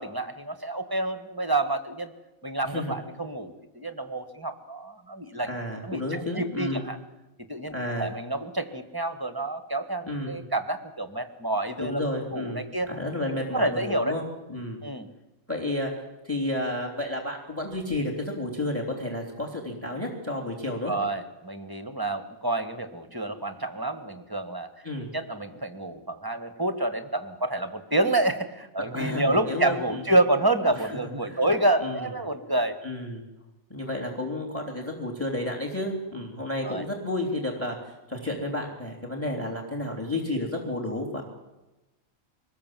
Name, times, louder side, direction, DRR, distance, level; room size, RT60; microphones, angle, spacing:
voice 1, 0.0-2.1 2.4-5.5 5.8-7.0 7.5-12.0 12.3-12.9 13.5-14.1 14.8-15.1 20.9-24.7 25.1-32.8 36.6-36.8, right 2 dB, 15° right, 9 dB, 1.6 m, -28 dB
voice 2, 2.6-2.9 5.4-6.9 7.7-8.1 10.1-10.4 11.8-14.2 14.5-14.8 15.5-21.0 24.8-25.1 28.9-30.0 30.7-30.9 31.2-31.5 31.8-32.1 32.8-33.2 33.7-41.2, left 1 dB, 10° left, 2 dB, 3.4 m, -31 dB
24.5 x 20.0 x 7.6 m, 1.0 s
omnidirectional pair, 1.4 m